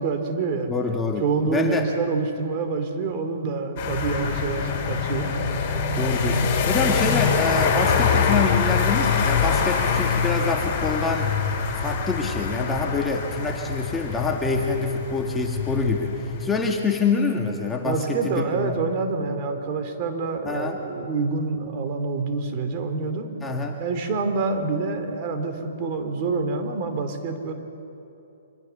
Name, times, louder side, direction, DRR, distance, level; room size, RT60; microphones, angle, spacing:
voice 1, 0.0-0.7 1.2-5.3 17.8-23.3 23.8-27.5, right 4 dB, 35° right, 6 dB, 2.8 m, -27 dB
voice 2, 0.7-1.9 5.9-11.3 11.7-16.1 16.4-18.8 20.4-20.8 23.4-23.8, left 4 dB, 10° left, 1 dB, 1.7 m, -26 dB
sound 1, 3.8-16.5, left 5 dB, 35° left, 5.6 m, -24 dB
25.0 x 22.0 x 7.0 m, 2.8 s
hypercardioid pair, 150°, 0 cm